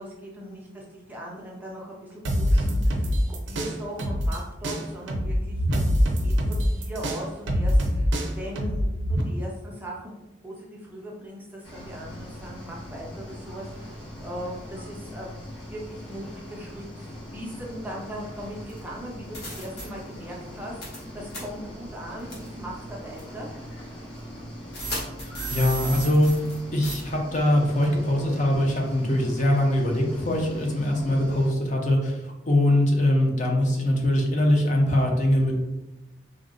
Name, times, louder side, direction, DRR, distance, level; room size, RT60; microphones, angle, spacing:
voice 1, 0.0-8.1 8.4-10.1 10.4-15.3 15.7-23.5, equal, 10° right, -3 dB, 0.4 m, -39 dB
sound 1, 2.2-4.4 4.6-9.2, equal, 75° right, 0.5 m, -24 dB
sound 2, 11.6-31.5, equal, 80° left, 1.2 m, -41 dB
sound 3, 18.7-18.8 19.3-19.8 20.8-21.0 21.3-21.4 22.3-22.5 23.2-23.3 24.7-26.6 26.8-27.0, right 2 dB, 60° left, 1.0 m, -33 dB
voice 2, 25.2-26.4 26.7-35.6, left 1 dB, 40° left, 0 dB, 0.5 m, -22 dB
3.5 x 2.0 x 2.5 m, 0.97 s
head